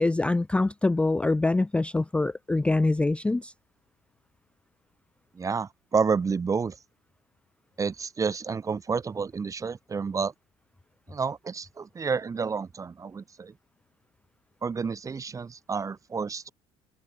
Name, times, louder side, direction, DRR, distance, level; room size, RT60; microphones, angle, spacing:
voice 1, 0.0-3.5, left 2 dB, 10° left, 0.4 m, -24 dB
voice 2, 5.3-6.8 7.8-10.3 11.1-13.5 14.6-16.5, right 5 dB, 25° right, 1.0 m, -29 dB
supercardioid pair, 100°, 13 cm